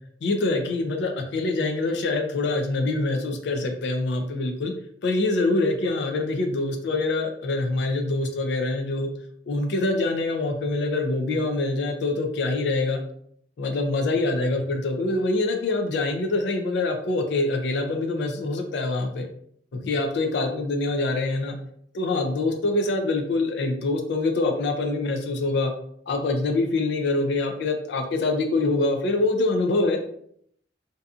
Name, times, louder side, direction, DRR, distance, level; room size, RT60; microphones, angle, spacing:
voice 1, 0.2-4.7 5.0-9.1 9.5-13.0 13.6-19.3 19.7-21.5 21.9-25.7 26.1-30.2, left 2 dB, 65° left, 4 dB, 0.4 m, -25 dB
2.6 x 2.4 x 2.3 m, 0.66 s
head